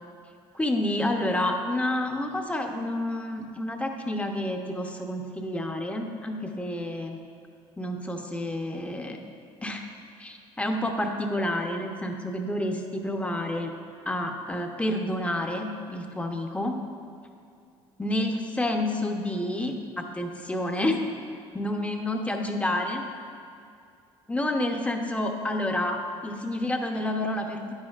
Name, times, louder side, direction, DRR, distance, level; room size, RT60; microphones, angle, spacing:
voice 1, 0.5-7.2 7.8-9.2 9.6-9.8 10.2-13.7 14.1-16.8 18.0-21.0 21.5-23.0 24.3-26.0 26.2-27.7, left 1 dB, 10° left, 3 dB, 0.8 m, -29 dB
9.8 x 9.7 x 2.4 m, 2.5 s
cardioid pair, 100°, 11 cm